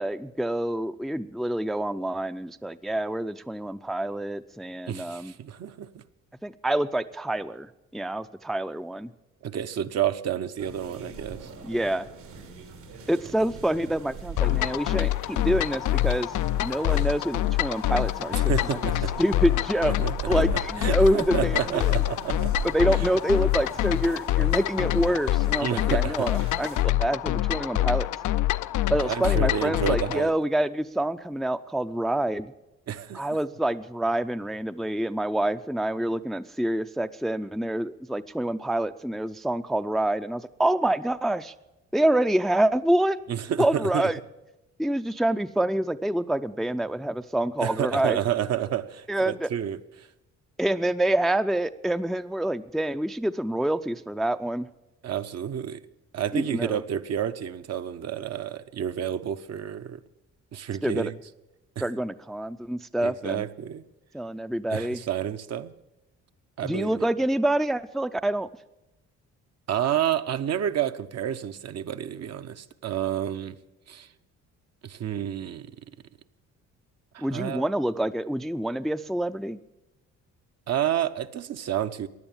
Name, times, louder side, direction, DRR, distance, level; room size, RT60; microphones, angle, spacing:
voice 1, 0.0-5.3 6.4-9.1 11.6-12.1 13.1-18.5 19.2-21.9 22.6-28.1 28.9-32.5 33.1-41.5 41.9-43.2 43.6-44.2 44.8-48.2 49.1-49.5 50.6-54.7 56.3-56.8 60.8-61.1 61.8-63.5 64.1-65.0 66.6-68.5 77.2-79.6, right 1 dB, ahead, 11 dB, 0.4 m, -27 dB
voice 2, 4.9-6.0 9.4-11.5 18.5-19.1 19.9-22.5 23.0-23.1 25.6-26.3 29.0-30.3 32.9-33.3 43.3-44.1 47.6-50.1 55.0-55.8 56.1-60.0 60.5-61.1 61.8-61.9 63.0-63.8 64.7-65.7 66.6-67.1 69.7-73.5 73.9-74.1 74.8-75.7 77.1-77.7 80.7-82.1, right 10 dB, 60° right, 9 dB, 0.8 m, -30 dB
sound 1, 10.6-26.8, right 6 dB, 85° right, 3.1 m, -41 dB
sound 2, 14.4-30.2, left 15 dB, 80° left, 0.5 m, -26 dB
16.0 x 10.5 x 7.2 m, 0.98 s
cardioid pair, 90°, 30 cm